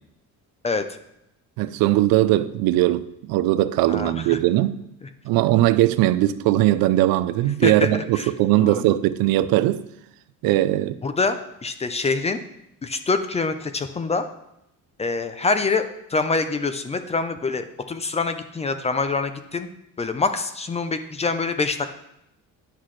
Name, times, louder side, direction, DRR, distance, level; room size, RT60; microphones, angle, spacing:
voice 1, 1.6-4.8 5.2-9.8 10.4-11.0, right 15 dB, 85° right, 0.5 m, -20 dB
voice 2, 3.9-4.4 5.0-5.1 7.6-8.3 8.5-8.9 11.0-12.4 12.8-14.3 15.0-15.8 16.1-19.7 20.0-21.9, left 4 dB, 20° left, 0.4 m, -25 dB
10.0 x 5.8 x 3.2 m
cardioid pair, 135°, 35 cm